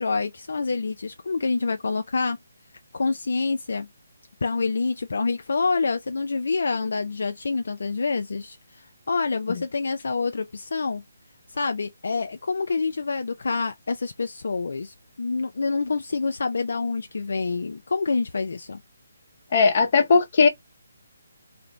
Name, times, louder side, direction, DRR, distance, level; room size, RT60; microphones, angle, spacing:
voice 1, 0.0-2.4 2.9-3.9 4.4-11.0 11.5-18.8, left 4 dB, 70° left, 0.3 m, -27 dB
voice 2, 19.5-20.5, left 4 dB, 45° left, 0.7 m, -18 dB
2.5 x 2.0 x 2.9 m
hypercardioid pair, 160°, 0 cm